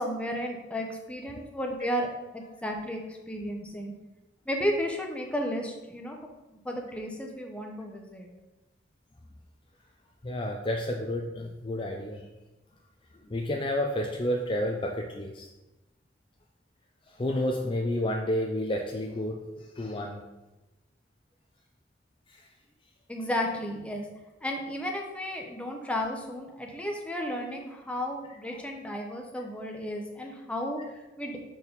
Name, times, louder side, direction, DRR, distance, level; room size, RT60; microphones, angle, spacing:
voice 1, 0.0-3.9 4.5-6.2 6.5-8.3 23.1-24.0 24.4-31.4, equal, 5° left, 1 dB, 0.9 m, -33 dB
voice 2, 10.2-12.3 13.2-15.5 17.1-20.2 22.3-22.5, left 1 dB, 30° left, 2 dB, 0.5 m, -30 dB
6.3 x 4.5 x 5.2 m, 1.1 s
head